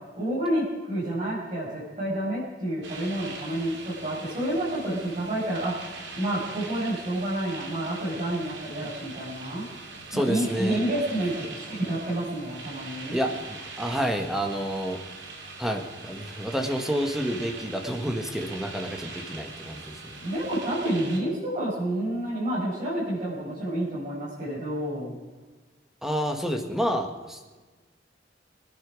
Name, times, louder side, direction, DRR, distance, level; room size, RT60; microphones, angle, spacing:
voice 1, 0.1-9.7 10.1-13.2 20.2-25.2, right 1 dB, 40° right, -8 dB, 5.7 m, -29 dB
sound 1, 2.8-21.2, right 3 dB, 75° right, 2.9 m, -42 dB
voice 2, 10.1-10.8 13.1-15.0 15.6-20.2 26.0-27.6, equal, ahead, 5 dB, 1.5 m, -29 dB
24.0 x 10.5 x 4.9 m, 1.3 s
head